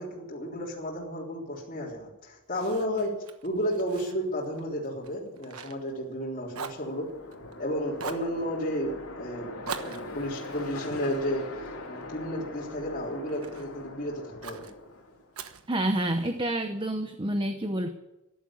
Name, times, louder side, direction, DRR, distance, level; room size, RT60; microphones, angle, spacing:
voice 1, 0.0-3.2 3.4-7.1 7.6-11.5 11.9-14.7, equal, 35° left, -5 dB, 3.5 m, -32 dB
Fire, 2.5-6.2 6.5-7.6 8.0-8.3 9.6-12.1 12.6-13.7 14.4-14.7 15.3-16.4, right 5 dB, 70° right, 1.2 m, -43 dB
sound 1, 6.4-15.4, left 2 dB, 80° left, 3.0 m, -42 dB
voice 2, 15.7-17.9, right 1 dB, 20° right, 7 dB, 0.8 m, -28 dB
13.5 x 11.5 x 8.8 m, 0.98 s
head